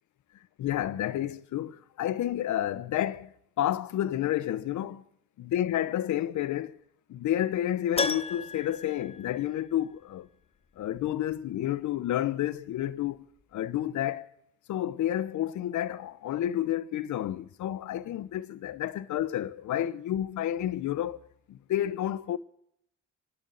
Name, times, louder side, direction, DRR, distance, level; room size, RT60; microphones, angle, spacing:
voice 1, 0.6-5.0 5.4-6.8 7.1-10.3 10.8-13.3 13.5-14.3 14.7-21.2 21.5-22.4, left 12 dB, 75° left, 1.0 m, -30 dB
Keyboard (musical), 8.0-10.0 10.3-10.4 13.1-13.2 13.4-13.5, left 4 dB, 20° left, 0.6 m, -34 dB
27.5 x 12.0 x 4.1 m
cardioid pair, 90°, 30 cm